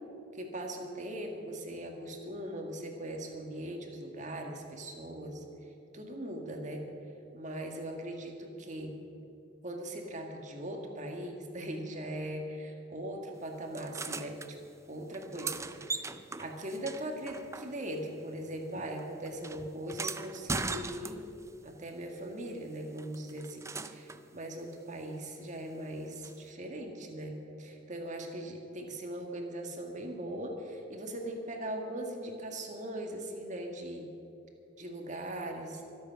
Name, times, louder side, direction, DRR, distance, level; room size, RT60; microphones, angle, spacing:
voice 1, 0.3-5.4 5.9-6.8 7.3-8.9 9.6-14.6 14.9-16.1 16.4-21.2 21.6-34.1 34.8-35.8, right 1 dB, 40° right, 2 dB, 1.9 m, -40 dB
sound 1, 13.7-14.5 15.1-18.1 18.3-21.5 23.0-24.3 26.2-26.3, right 3 dB, 15° right, 0.5 m, -39 dB
24.5 x 8.5 x 5.8 m, 2.8 s
head